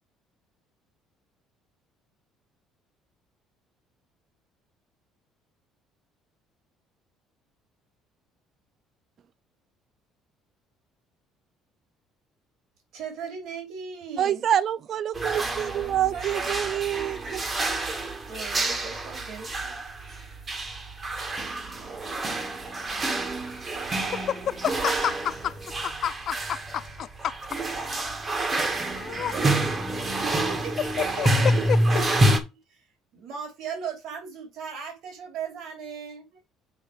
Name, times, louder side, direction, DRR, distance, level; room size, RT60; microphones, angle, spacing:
voice 1, 12.9-14.4 15.9-17.1 17.8-17.9 18.3-20.4 30.2-31.1 32.7-32.8 33.1-36.4, right 6 dB, 65° right, 2.9 m, -38 dB
voice 2, 14.2-17.4 29.3-29.5, right 10 dB, 50° right, 0.4 m, -27 dB
sound 1, 15.1-32.4, right 1 dB, 30° right, 1.5 m, -28 dB
voice 3, 24.1-25.6 25.8-27.7 28.9-29.5 31.2-31.3 31.7-31.8, left 10 dB, 55° left, 0.5 m, -30 dB
6.5 x 4.2 x 5.1 m
cardioid pair, 110°, 0 cm